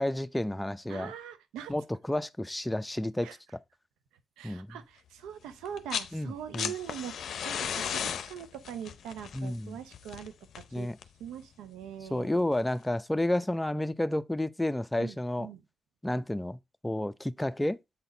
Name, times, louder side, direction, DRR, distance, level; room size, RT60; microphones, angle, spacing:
voice 1, 0.0-1.1 1.7-3.3 4.4-4.8 6.1-6.7 9.3-9.8 10.7-11.0 12.1-15.5 16.0-17.8, left 1 dB, 15° left, 0.7 m, -31 dB
voice 2, 0.9-1.7 3.2-3.4 4.4-10.9 11.2-12.3 15.0-15.6, right 9 dB, 90° right, 0.7 m, -42 dB
sound 1, 5.6-6.1 6.4-11.3 12.5-12.6, left 8 dB, 75° left, 0.6 m, -36 dB
8.1 x 4.2 x 3.9 m
supercardioid pair, 45°, 0 cm